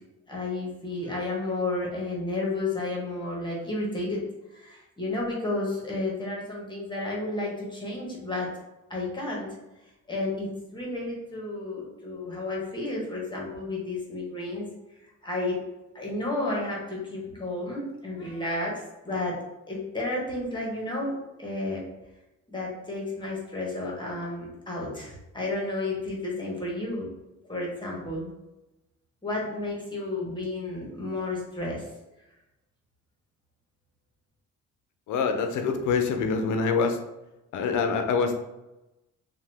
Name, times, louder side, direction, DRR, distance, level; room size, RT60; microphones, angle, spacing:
voice 1, 0.3-4.2 4.5-8.5 8.9-9.5 10.1-14.7 15.2-15.6 15.9-19.4 19.7-21.8 22.5-27.1 27.5-28.3 29.2-31.8, left 2 dB, 15° left, -4 dB, 1.0 m, -32 dB
voice 2, 35.1-37.0 37.5-38.3, left 5 dB, 75° left, 6 dB, 0.5 m, -25 dB
2.7 x 2.2 x 3.3 m, 0.97 s
cardioid pair, 90°, 30 cm